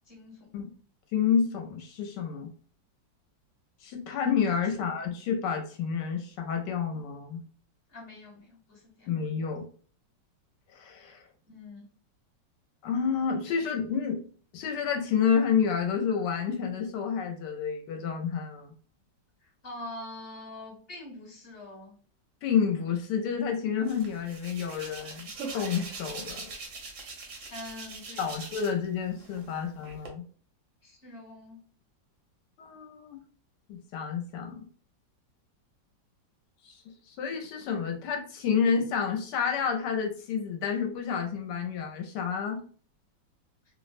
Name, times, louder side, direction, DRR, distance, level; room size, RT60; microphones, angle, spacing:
voice 1, 0.1-0.6 4.7-5.0 7.9-9.1 11.5-11.8 19.4-21.9 27.5-28.5 29.5-29.6 30.8-31.6, left 1 dB, 40° left, -2 dB, 1.0 m, -44 dB
voice 2, 1.1-2.5 3.8-7.4 9.1-9.7 10.7-11.2 12.8-14.2 14.5-18.7 22.4-26.4 28.2-30.2 32.6-33.2 33.7-34.6 36.6-42.6, left 7 dB, 75° left, 3 dB, 1.2 m, -29 dB
Hands, 23.9-28.9 29.2-30.1, right 3 dB, 60° right, 0.9 m, -42 dB
3.0 x 2.1 x 2.4 m, 0.43 s
omnidirectional pair, 1.9 m